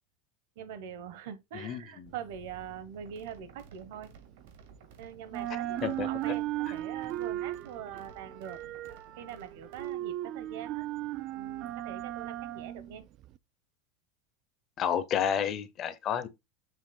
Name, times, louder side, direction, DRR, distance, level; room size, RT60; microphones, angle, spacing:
voice 1, 0.6-4.1 5.0-8.6 9.2-10.9 11.3-13.1, right 8 dB, 60° right, 1.1 m, -43 dB
voice 2, 1.5-2.1 5.5-6.3 14.8-16.3, left 8 dB, 25° left, 0.6 m, -31 dB
sound 1, 2.1-4.9 5.2-13.4, right 14 dB, 35° right, 0.3 m, -37 dB
sound 2, 2.9-9.9, right 5 dB, 85° right, 2.1 m, -56 dB
7.4 x 3.0 x 5.1 m
supercardioid pair, 175°, 0 cm